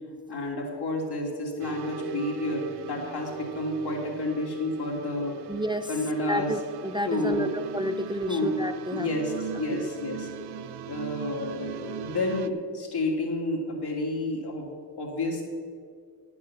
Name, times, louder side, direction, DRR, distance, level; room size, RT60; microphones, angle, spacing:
voice 1, 0.3-5.4 5.9-6.5 7.0-7.5 8.3-8.5 8.9-10.3 10.8-15.4, left 2 dB, 80° left, -1 dB, 2.6 m, -30 dB
sound 1, 1.6-12.5, right 12 dB, 85° right, 0.6 m, -40 dB
voice 2, 5.5-5.9 6.3-9.1 9.7-9.9, equal, 15° right, 9 dB, 0.4 m, -30 dB
10.0 x 8.3 x 7.3 m, 2.2 s
cardioid pair, 90°, 39 cm